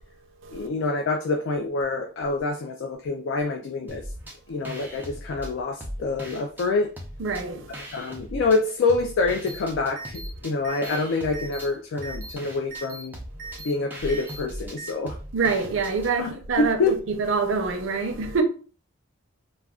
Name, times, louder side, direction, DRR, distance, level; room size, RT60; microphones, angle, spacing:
voice 1, 0.5-4.1 4.5-6.9 7.9-13.2 13.6-15.2 16.2-17.0, left 3 dB, 75° left, 0.3 m, -26 dB
sound 1, 3.9-4.4 4.6-6.7 7.0-8.6 8.9-16.1, equal, 10° right, 0.4 m, -39 dB
voice 2, 7.2-7.8 15.3-16.8 17.1-18.4, right 4 dB, 85° right, 0.5 m, -26 dB
sound 2, 9.5-9.6 10.0-10.3 10.6-11.0 11.3-11.6 12.0-12.3 12.7-13.0 13.4-13.7 14.1-14.4 14.8-14.9, right 3 dB, 40° right, 0.7 m, -39 dB
2.3 x 2.2 x 3.5 m
head